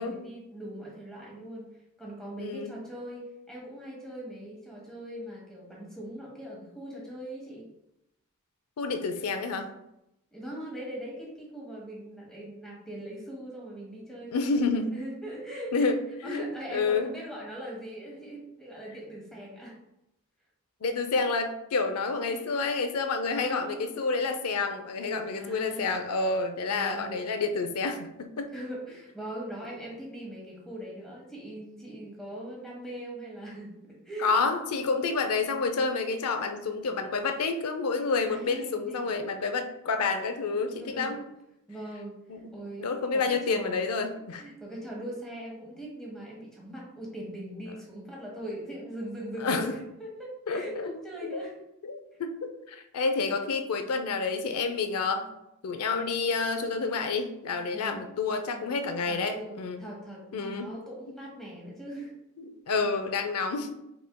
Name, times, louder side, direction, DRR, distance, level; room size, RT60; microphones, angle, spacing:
voice 1, 0.0-1.7 2.0-7.7 10.3-15.9 16.2-19.8 22.2-22.8 23.2-24.0 25.0-26.0 26.7-27.2 28.5-34.3 38.3-39.1 40.8-41.2 41.7-42.1 42.5-43.9 44.4-51.6 57.7-58.7 59.0-62.1, right 1 dB, ahead, -4 dB, 1.4 m, -41 dB
voice 2, 2.4-2.7 8.8-9.7 14.3-14.9 15.7-16.0 16.2-17.1 20.8-28.5 34.2-41.2 42.3-42.5 42.8-44.5 49.4-49.7 50.5-50.9 51.3-51.4 51.8-55.3 55.6-59.8 60.3-60.7 62.5-63.7, left 4 dB, 80° left, 7 dB, 0.5 m, -29 dB
5.2 x 4.3 x 2.2 m, 0.85 s
head